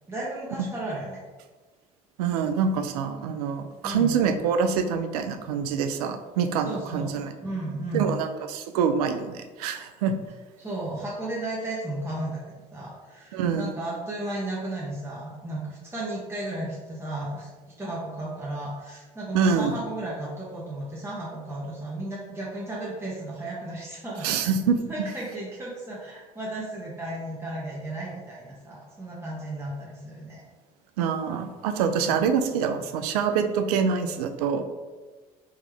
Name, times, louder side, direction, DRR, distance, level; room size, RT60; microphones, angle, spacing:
voice 1, 0.1-1.2 3.8-4.2 6.6-7.1 7.4-8.2 10.6-12.4 12.7-17.5 17.8-24.5 24.9-30.4 32.0-32.2, right 1 dB, 15° right, -6 dB, 1.0 m, -34 dB
voice 2, 2.2-7.3 7.9-10.1 13.3-13.7 19.3-19.7 24.2-25.1 31.0-34.6, right 6 dB, 80° right, 7 dB, 0.4 m, -25 dB
3.6 x 3.0 x 3.4 m, 1.3 s
hypercardioid pair, 60°, 19 cm